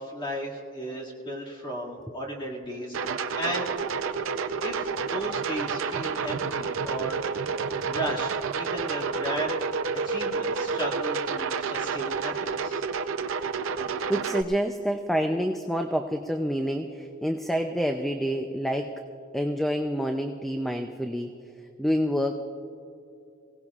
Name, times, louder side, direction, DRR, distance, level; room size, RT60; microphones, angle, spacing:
voice 1, 0.0-3.7 4.6-9.6 10.0-12.8, right 1 dB, 25° left, -3 dB, 2.1 m, -35 dB
sound 1, 2.9-14.4, right 5 dB, 70° right, 0.6 m, -29 dB
voice 2, 13.8-18.9 19.3-21.3 21.8-22.3, equal, ahead, 5 dB, 0.4 m, -28 dB
24.0 x 17.0 x 2.4 m, 2.7 s
head